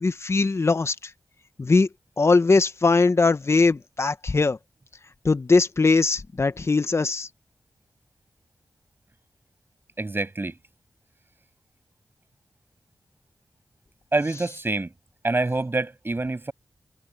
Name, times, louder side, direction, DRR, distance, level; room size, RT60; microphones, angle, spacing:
voice 1, 0.0-1.0 1.6-1.9 2.2-4.6 5.2-7.3, left 3 dB, 45° left, 1.1 m, -20 dB
voice 2, 10.0-10.6 14.1-14.9 15.2-16.5, right 2 dB, 35° right, 7.3 m, -26 dB
cardioid pair, 45°, 6 cm